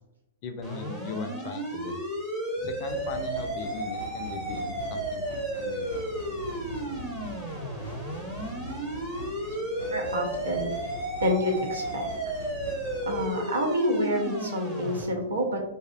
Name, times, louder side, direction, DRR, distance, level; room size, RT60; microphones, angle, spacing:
voice 1, 0.4-2.0 2.6-5.2 5.6-6.0, left 4 dB, 45° left, 6 dB, 0.4 m, -39 dB
sound 1, 0.6-15.0, right 1 dB, 15° right, 0.7 m, -33 dB
sound 2, 2.8-13.3, equal, 85° left, 0.7 m, -42 dB
voice 2, 9.9-10.9 11.2-12.1 13.1-15.6, equal, 85° right, 0 dB, 0.6 m, -28 dB
2.6 x 2.0 x 2.4 m, 0.96 s
hypercardioid pair, 110°, 0 cm